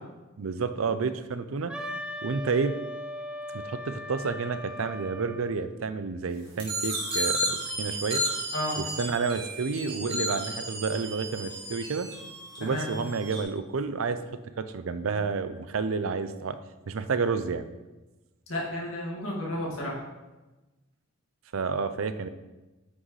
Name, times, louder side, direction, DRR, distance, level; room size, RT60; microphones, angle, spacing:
voice 1, 0.4-1.7 2.2-2.7 3.5-8.2 8.8-12.1 12.6-14.2 14.6-16.6 16.9-17.7 21.5-22.3, right 4 dB, 90° right, 11 dB, 0.5 m, -30 dB
Wind instrument woodwind instrument, 1.7-5.5, left 1 dB, 5° right, 0.5 m, -38 dB
sound 1, 6.6-13.4, equal, 30° right, 2.3 m, -33 dB
voice 2, 18.5-20.0, left 1 dB, 70° left, -4 dB, 2.2 m, -32 dB
9.2 x 6.2 x 3.2 m, 1.1 s
head